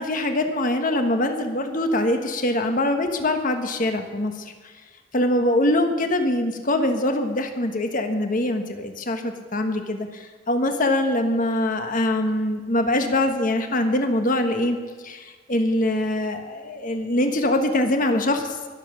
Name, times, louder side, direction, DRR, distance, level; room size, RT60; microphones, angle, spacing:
voice 1, 0.0-4.5 5.1-14.8 15.0-18.6, left 1 dB, 45° left, 6 dB, 1.4 m, -23 dB
21.5 x 7.4 x 6.3 m, 1.4 s
head